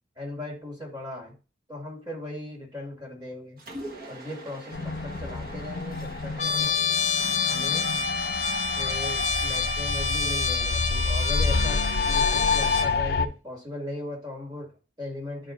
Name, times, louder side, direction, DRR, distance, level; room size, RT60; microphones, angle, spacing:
voice 1, 0.2-1.3 1.7-3.6 4.1-6.8 7.5-7.9 8.8-15.5, left 1 dB, 25° right, -2 dB, 2.4 m, -38 dB
Mechanisms, 3.6-8.7, right 1 dB, 50° right, 1.3 m, -44 dB
sound 1, 4.7-13.3, left 4 dB, 60° left, 0.4 m, -29 dB
Trumpet, 6.4-12.9, left 5 dB, 40° left, 0.8 m, -27 dB
11.5 x 4.4 x 2.6 m, 0.33 s
head